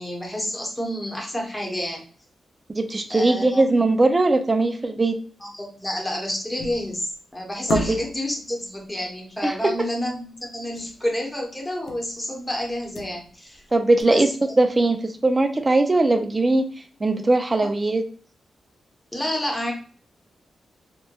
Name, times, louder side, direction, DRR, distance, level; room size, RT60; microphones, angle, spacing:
voice 1, 0.0-2.0 3.1-3.8 5.4-13.6 14.0-14.5 19.1-19.7, left 1 dB, 10° left, 0 dB, 0.8 m, -29 dB
voice 2, 2.8-5.2 7.7-8.0 9.4-9.6 13.7-14.3 14.6-16.7 17.0-18.1, right 2 dB, 25° right, 7 dB, 0.3 m, -20 dB
sound 1, 6.6-7.0 7.7-8.4 10.8-11.0 11.3-11.4 11.9-12.2 12.6-13.6 14.0-14.1, left 3 dB, 80° left, 0.4 m, -32 dB
2.9 x 2.1 x 2.2 m, 0.42 s
cardioid pair, 85°, 0 cm